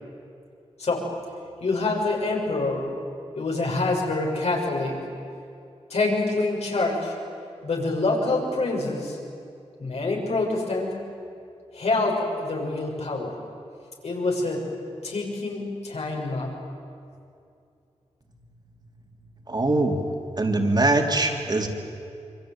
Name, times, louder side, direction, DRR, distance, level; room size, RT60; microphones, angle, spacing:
voice 1, 1.6-2.9 3.3-5.0 5.9-7.1 7.6-9.2 9.8-11.0 11.7-13.4 14.0-14.7 15.0-16.5, left 2 dB, 70° left, -1 dB, 6.7 m, -26 dB
voice 2, 19.5-20.0 20.4-21.7, right 2 dB, 40° right, 2 dB, 3.9 m, -22 dB
26.0 x 24.5 x 9.3 m, 2.5 s
cardioid pair, 55°, 11 cm